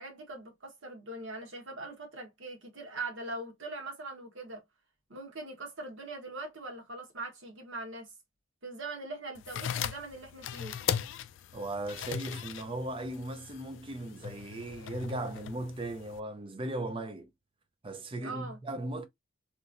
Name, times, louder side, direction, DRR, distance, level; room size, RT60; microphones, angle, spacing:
voice 1, 0.0-4.6 5.1-8.1 8.6-10.8 18.2-18.6, right 2 dB, 60° right, 1.2 m, -41 dB
sound 1, 9.4-16.2, left 8 dB, 55° left, 0.3 m, -38 dB
voice 2, 11.5-17.3 17.8-19.1, right 1 dB, 25° right, 0.5 m, -37 dB
3.1 x 3.0 x 2.5 m
head